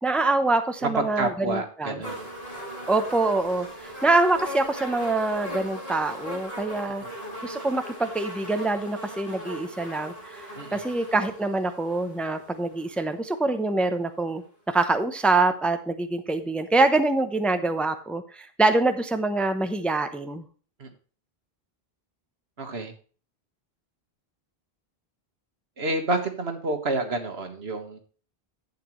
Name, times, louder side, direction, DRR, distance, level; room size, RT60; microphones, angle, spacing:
voice 1, 0.0-2.0 2.9-3.7 4.0-7.0 7.4-10.5 10.7-20.4, right 2 dB, ahead, 8 dB, 0.7 m, -25 dB
voice 2, 0.8-2.3 7.0-7.1 10.6-10.8 20.8-20.9 22.6-22.9 25.8-28.0, right 2 dB, 85° right, 6 dB, 1.8 m, -29 dB
sound 1, 2.0-13.1 14.0-14.1, equal, 40° left, 6.3 m, -39 dB
11.5 x 8.5 x 3.1 m, 0.39 s
omnidirectional pair, 1.0 m